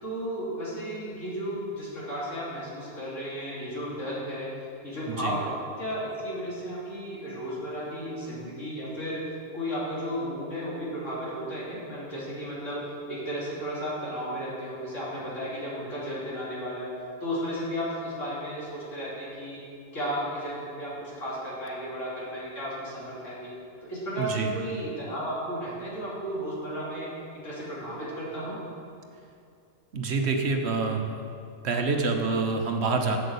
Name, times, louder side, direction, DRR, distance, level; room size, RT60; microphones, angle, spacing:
voice 1, 0.0-4.5 4.8-5.5 5.8-9.2 9.5-12.8 13.1-16.9 17.2-19.6 19.9-23.5 23.8-27.1 27.4-28.6, equal, 80° left, -7 dB, 3.2 m, -34 dB
voice 2, 24.2-24.5 29.9-31.0 31.6-33.2, right 4 dB, 60° right, 4 dB, 1.1 m, -26 dB
8.1 x 7.8 x 6.9 m, 2.5 s
omnidirectional pair, 1.3 m